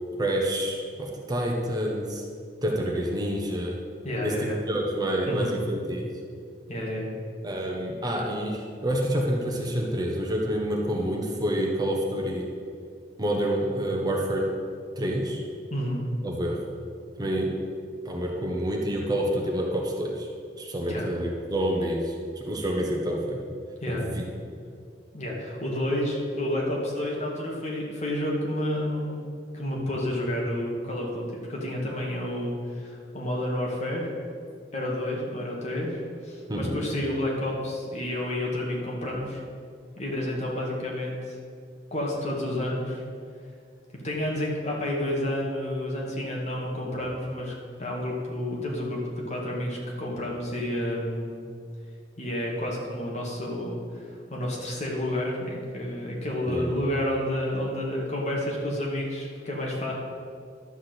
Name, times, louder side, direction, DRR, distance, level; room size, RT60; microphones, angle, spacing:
voice 1, 0.2-2.2 2.6-3.8 4.2-6.1 7.4-12.5 13.2-14.5 15.0-15.4 16.2-16.6 17.2-17.6 18.0-20.3 20.6-23.5 23.9-24.2 36.5-36.8 56.5-56.7, equal, 25° right, -1 dB, 1.1 m, -28 dB
voice 2, 4.0-4.6 5.3-5.6 6.7-7.1 15.7-16.1 20.9-21.1 23.8-24.1 25.1-29.2 29.5-34.1 34.7-39.4 40.0-41.4 41.9-43.0 44.0-47.5 47.8-49.0 49.3-51.4 52.2-59.9, left 1 dB, 40° left, -3 dB, 2.2 m, -30 dB
12.0 x 4.9 x 8.0 m, 2.2 s
head